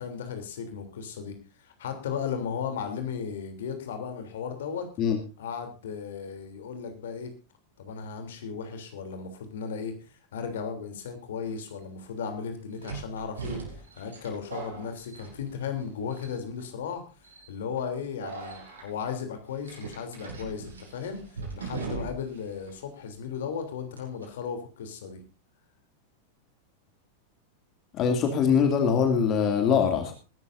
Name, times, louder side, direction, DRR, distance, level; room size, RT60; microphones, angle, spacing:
voice 1, 0.0-4.9 5.4-7.3 7.8-9.9 10.3-21.3 21.5-25.2, left 6 dB, 60° left, 6 dB, 3.2 m, -35 dB
sound 1, 11.5-11.6 12.8-15.8 16.1-16.6 17.2-17.5 18.2-18.8 19.6-22.4 22.7-22.8 24.0-24.2, right 4 dB, 70° right, 6.1 m, -39 dB
voice 2, 27.9-30.1, left 6 dB, 35° left, 5 dB, 2.5 m, -23 dB
21.5 x 12.5 x 2.6 m, 0.33 s
figure-of-eight pair, 90°, 0 cm